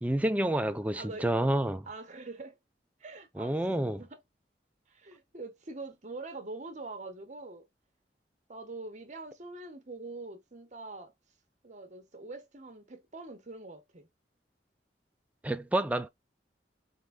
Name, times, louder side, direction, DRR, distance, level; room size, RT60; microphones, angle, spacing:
voice 1, 0.0-1.9 3.4-4.0 15.4-16.1, right 1 dB, 10° right, 0.4 m, -29 dB
voice 2, 0.9-1.6 1.9-2.6 3.0-4.2 4.9-7.7 8.5-11.1 11.6-14.1, right 3 dB, 40° right, 1.1 m, -44 dB
4.4 x 3.7 x 2.2 m
head